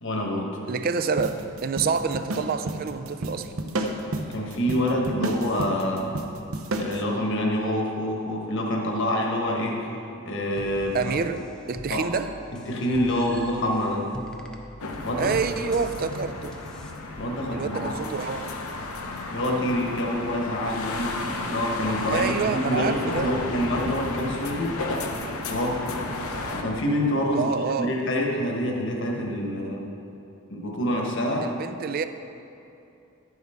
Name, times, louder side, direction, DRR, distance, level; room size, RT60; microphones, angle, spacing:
voice 1, 0.0-0.6 4.3-6.1 6.7-9.9 10.2-11.0 11.9-12.0 12.5-14.1 15.0-15.3 17.1-17.8 19.3-24.8 25.5-25.9 26.5-29.9 30.5-31.5, equal, 55° left, 1.3 m, -26 dB
voice 2, 0.7-3.5 10.9-12.3 15.2-16.6 17.5-18.6 22.1-23.4 27.3-28.0 31.4-32.1, right 5 dB, 45° right, 0.4 m, -28 dB
sound 1, 1.2-7.0, right 1 dB, 70° right, 0.7 m, -31 dB
sound 2, 10.6-16.9, equal, 5° left, 0.6 m, -44 dB
sound 3, 14.8-26.6, left 2 dB, 80° left, 0.9 m, -33 dB
11.0 x 9.5 x 3.6 m
head